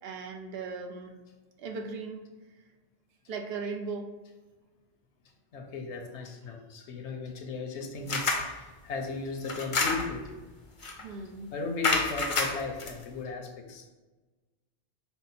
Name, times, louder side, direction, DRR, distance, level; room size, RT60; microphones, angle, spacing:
voice 1, 0.0-1.1 1.6-2.2 3.3-4.1 11.0-11.5, right 4 dB, 70° right, 3 dB, 0.7 m, -37 dB
voice 2, 5.5-10.3 11.5-13.9, left 4 dB, 80° left, 3 dB, 1.0 m, -36 dB
sound 1, 8.1-8.5 9.4-10.3 10.8-11.0 11.8-12.9, left 3 dB, 45° left, 0.4 m, -28 dB
5.7 x 2.0 x 4.0 m, 1.2 s
omnidirectional pair, 1.1 m